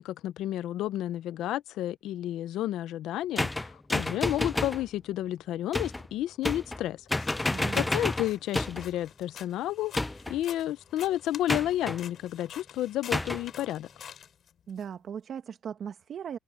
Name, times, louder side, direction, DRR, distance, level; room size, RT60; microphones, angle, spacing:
voice 1, 0.0-7.0 7.7-13.9, left 13 dB, 85° left, 0.6 m, -31 dB
sound 1, 3.4-4.8 5.7-6.1 6.4-6.8 7.1-8.9 9.9-10.4 11.5-12.0 13.1-13.5, left 2 dB, 15° left, 0.4 m, -30 dB
sound 2, 7.2-14.8, left 8 dB, 65° left, 2.8 m, -49 dB
voice 2, 7.5-7.9 14.7-16.4, right 8 dB, 60° right, 1.1 m, -38 dB
cardioid pair, 90°, 0 cm